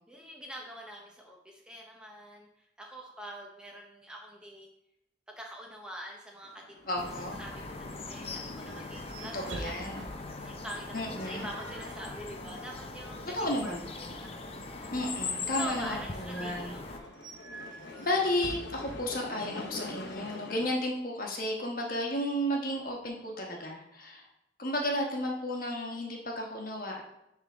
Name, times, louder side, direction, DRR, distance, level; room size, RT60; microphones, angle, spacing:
voice 1, 0.1-4.7 5.3-7.0 7.4-9.7 10.1-13.7 14.0-14.4 14.8-15.0 15.5-17.1, equal, 5° right, -1 dB, 0.7 m, -45 dB
sound 1, 6.4-20.7, left 2 dB, 65° left, 0.8 m, -48 dB
voice 2, 6.8-7.4 9.3-10.0 10.9-11.5 13.3-14.1 14.9-16.7 18.0-24.3 24.6-27.0, left 1 dB, 50° left, 0 dB, 1.2 m, -33 dB
sound 2, 6.8-20.2, right 2 dB, 90° right, 0.8 m, -49 dB
sound 3, 7.0-17.0, left 3 dB, 30° left, 0.6 m, -40 dB
9.8 x 3.7 x 3.5 m, 0.85 s
head